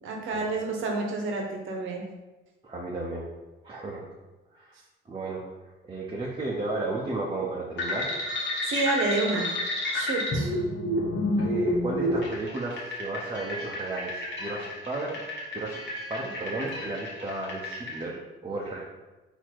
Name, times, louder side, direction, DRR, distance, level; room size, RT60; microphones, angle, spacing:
voice 1, 0.0-2.0 8.6-9.5 9.9-10.6, right 3 dB, 80° right, 1 dB, 1.0 m, -29 dB
voice 2, 2.6-3.2 3.6-4.0 4.5-4.7 5.1-5.4 5.8-8.1 11.4-15.2 15.5-15.8 16.1-18.8, right 2 dB, 25° right, -3 dB, 0.8 m, -33 dB
sound 1, 7.8-18.0, left 1 dB, 65° left, 1.3 m, -30 dB
4.2 x 2.8 x 4.5 m, 1.1 s
cardioid pair, 90°, 20 cm